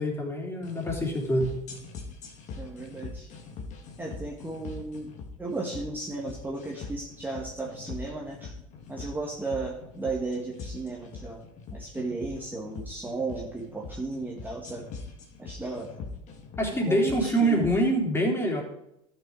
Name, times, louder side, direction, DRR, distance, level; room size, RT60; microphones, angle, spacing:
voice 1, 0.0-1.6 16.6-18.6, right 1 dB, 15° left, 0 dB, 3.4 m, -25 dB
sound 1, 0.6-17.8, left 4 dB, 45° left, 2.3 m, -42 dB
voice 2, 2.6-3.3 4.0-5.1 5.4-8.5 8.9-11.4 11.7-14.9 15.4-15.9 16.9-17.7, right 3 dB, 10° right, -2 dB, 1.8 m, -35 dB
12.5 x 6.6 x 4.9 m, 0.84 s
hypercardioid pair, 85°, 16 cm